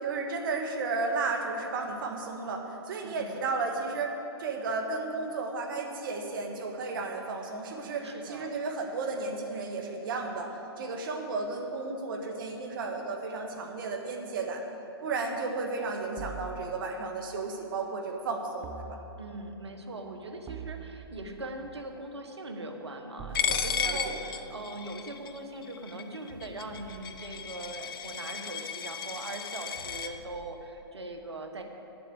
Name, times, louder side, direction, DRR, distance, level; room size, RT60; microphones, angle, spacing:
voice 1, 0.0-14.6 15.0-19.0 23.8-24.2, right 3 dB, 55° right, 3 dB, 1.6 m, -33 dB
voice 2, 3.0-3.4 8.0-8.5 19.2-31.6, right 2 dB, 85° right, 5 dB, 1.4 m, -41 dB
sound 1, 16.2-17.2 18.6-19.6 20.5-21.5 23.2-24.6, right 7 dB, 20° right, 0.6 m, -43 dB
Coin (dropping), 23.3-30.1, left 8 dB, 55° left, 0.7 m, -34 dB
sound 2, 24.6-25.4 26.3-28.0 28.2-28.3 29.7-30.9, left 1 dB, 30° left, 2.0 m, -53 dB
9.3 x 7.7 x 8.0 m, 3.0 s
hypercardioid pair, 130°, 14 cm